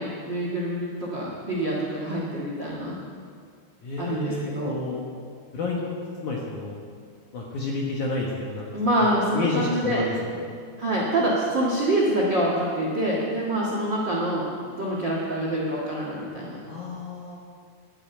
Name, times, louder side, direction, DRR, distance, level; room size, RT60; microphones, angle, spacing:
voice 1, 0.0-3.0 4.0-4.8 8.7-10.0 10.8-14.5 14.8-16.6, right 1 dB, 85° right, -4 dB, 1.0 m, -26 dB
voice 2, 3.8-5.0 5.5-5.9 6.2-6.8 7.3-8.7 9.0-9.1 9.3-10.5 16.7-17.4, left 3 dB, 65° left, -2 dB, 2.0 m, -30 dB
11.5 x 8.7 x 8.9 m, 2.2 s
omnidirectional pair, 5.2 m